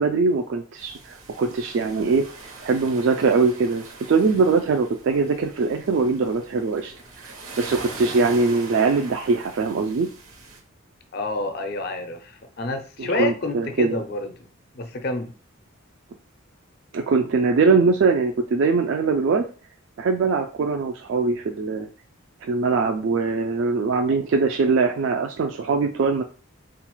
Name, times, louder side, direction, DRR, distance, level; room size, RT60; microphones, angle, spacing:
voice 1, 0.0-2.3 2.6-6.9 7.2-10.1 13.0-14.0 16.9-19.4 20.0-21.9 22.4-26.2, right 4 dB, 60° right, 0.3 m, -22 dB
sound 1, 0.8-10.6, right 3 dB, 85° right, 1.0 m, -42 dB
voice 2, 11.1-14.3 14.7-15.3, left 2 dB, 45° left, 0.4 m, -28 dB
3.9 x 2.4 x 3.0 m
head